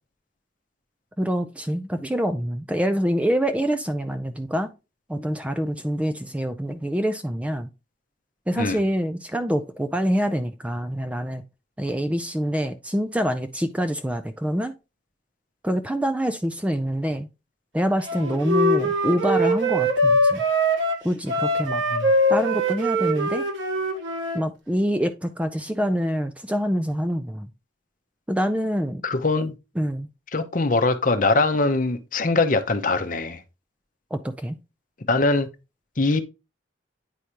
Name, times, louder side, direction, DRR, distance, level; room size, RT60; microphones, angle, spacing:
voice 1, 1.2-4.7 5.1-7.7 8.5-11.4 11.8-14.7 15.6-17.3 17.7-20.4 21.0-21.8 22.3-23.4 24.3-27.5 28.3-29.0 29.8-30.1 34.1-34.6, equal, 5° right, 0.4 m, -25 dB
Wind instrument woodwind instrument, 18.1-24.4, equal, 80° right, 1.7 m, -22 dB
voice 2, 29.0-29.5 30.3-33.4 35.1-35.5 36.0-36.2, left 3 dB, 45° left, 0.7 m, -22 dB
9.1 x 4.9 x 2.8 m
head